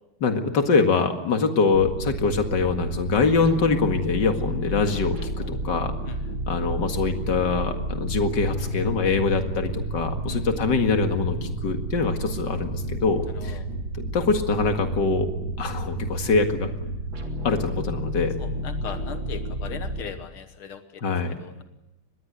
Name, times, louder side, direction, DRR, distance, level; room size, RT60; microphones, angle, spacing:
voice 1, 0.2-6.0 6.5-13.6 14.1-15.3 15.6-16.7 17.4-18.3 21.0-21.4, left 4 dB, 55° left, 6 dB, 2.5 m, -24 dB
sound 1, 1.7-20.0, right 1 dB, 65° right, 3.9 m, -31 dB
voice 2, 13.3-13.7 18.4-21.0 21.4-21.6, left 7 dB, 90° left, 9 dB, 2.2 m, -39 dB
25.0 x 20.5 x 8.2 m, 0.90 s
omnidirectional pair, 2.3 m